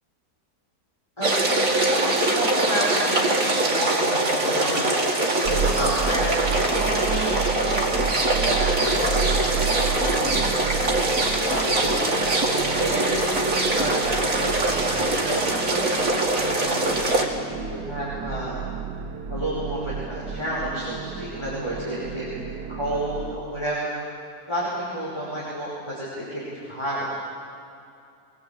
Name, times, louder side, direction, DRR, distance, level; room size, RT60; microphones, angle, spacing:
voice 1, 1.2-5.2 5.5-7.8 8.2-10.3 10.7-12.2 12.6-13.3 13.8-14.5 15.2-15.9 16.4-17.1 17.4-18.6 19.3-23.9 24.5-27.0, equal, 15° left, -7 dB, 5.6 m, -30 dB
sound 1, 1.2-17.2, right 2 dB, 60° right, 2.9 m, -23 dB
sound 2, 5.4-23.4, right 7 dB, 90° right, 1.5 m, -32 dB
24.0 x 20.0 x 8.7 m, 2.5 s
omnidirectional pair, 1.6 m